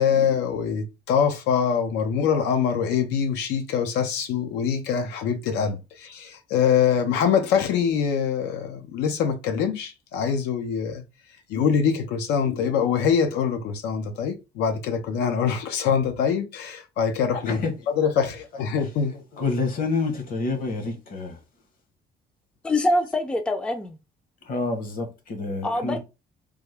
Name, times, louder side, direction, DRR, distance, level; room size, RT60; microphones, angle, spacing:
voice 1, 0.0-11.0 11.5-17.6 18.0-19.1, left 7 dB, 85° left, 0.6 m, -24 dB
voice 2, 19.1-21.4 24.4-26.0, left 3 dB, 55° left, 1.1 m, -28 dB
voice 3, 22.6-24.0 25.6-26.0, left 1 dB, 5° left, 0.4 m, -24 dB
3.4 x 2.0 x 3.2 m
cardioid pair, 110°, 17 cm